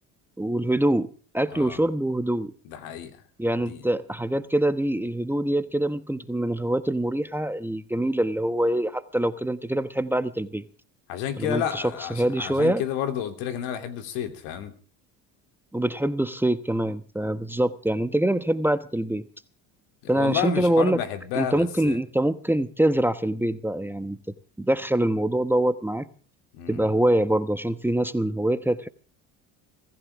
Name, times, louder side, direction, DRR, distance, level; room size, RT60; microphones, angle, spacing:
voice 1, 0.4-2.5 3.4-10.6 11.4-11.8 12.1-12.8 15.7-19.3 20.1-21.0 21.3-24.2 24.6-26.1 26.7-28.9, right 1 dB, 5° right, 1.1 m, -24 dB
voice 2, 2.6-3.2 3.6-3.8 11.1-14.7 20.0-22.0 26.5-26.8, left 9 dB, 85° left, 3.1 m, -31 dB
23.5 x 15.0 x 3.6 m
supercardioid pair, 95°, 39 cm